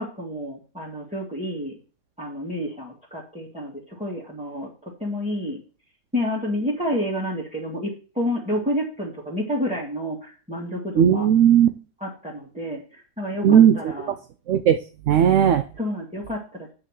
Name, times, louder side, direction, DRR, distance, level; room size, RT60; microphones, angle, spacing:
voice 1, 0.0-1.8 2.2-5.6 6.1-11.3 12.0-14.1 15.8-16.7, left 1 dB, 5° right, -5 dB, 2.1 m, -29 dB
voice 2, 11.0-11.7 13.4-13.9 14.5-14.8 15.1-15.6, right 9 dB, 65° right, 9 dB, 0.8 m, -16 dB
8.9 x 4.7 x 7.4 m, 0.37 s
omnidirectional pair, 1.8 m